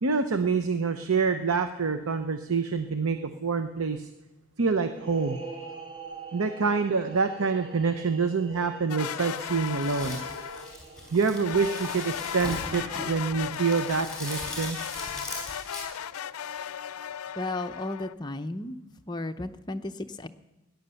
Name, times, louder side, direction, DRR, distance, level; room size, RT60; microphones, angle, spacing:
voice 1, 0.0-4.1 4.6-5.4 6.3-10.2 11.1-14.8, right 5 dB, 80° right, 9 dB, 0.7 m, -26 dB
sound 1, 4.9-13.5, right 4 dB, 20° right, 2.1 m, -45 dB
sound 2, 8.9-10.8 11.4-18.1, left 9 dB, 85° left, 0.4 m, -36 dB
sound 3, 9.3-15.8, left 1 dB, 5° left, 4.9 m, -40 dB
voice 2, 17.4-18.8 19.1-20.3, left 2 dB, 20° left, 7 dB, 0.6 m, -34 dB
17.5 x 10.5 x 6.9 m, 0.97 s
head